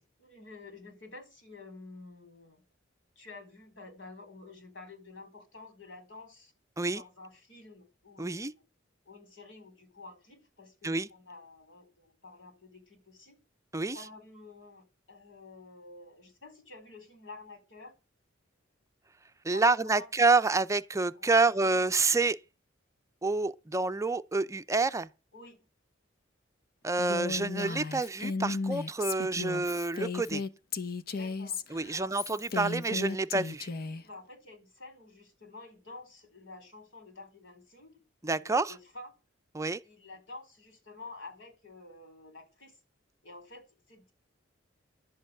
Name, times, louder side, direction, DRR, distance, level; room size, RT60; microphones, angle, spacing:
voice 1, 0.2-2.6 3.2-6.5 6.9-8.5 9.0-13.4 13.9-17.9 19.5-20.1 21.1-21.8 25.3-25.7 31.1-31.6 31.9-32.4 34.0-38.0 38.4-39.1 39.8-42.8 43.2-44.1, left 3 dB, 75° left, 4.4 m, -50 dB
voice 2, 8.2-8.5 10.8-11.1 13.7-14.0 19.4-22.4 23.2-25.1 26.8-30.4 31.7-33.7 38.2-38.7 39.5-39.8, right 3 dB, 15° right, 0.6 m, -28 dB
Female speech woman speaking, 27.0-34.0, left 4 dB, 50° left, 0.9 m, -35 dB
11.5 x 7.9 x 7.7 m
head